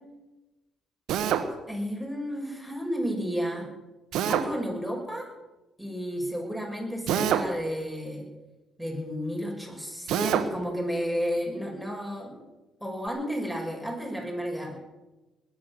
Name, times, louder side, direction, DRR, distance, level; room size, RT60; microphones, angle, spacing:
Drill, 1.1-1.5 4.1-4.5 7.1-7.5 10.1-10.5, right 9 dB, 70° right, 1.3 m, -25 dB
voice 1, 1.7-3.7 4.3-5.3 5.8-8.3 8.8-12.4 12.8-14.8, equal, 5° left, 1 dB, 6.4 m, -32 dB
20.0 x 9.9 x 7.1 m, 1.1 s
hypercardioid pair, 55°, 0 cm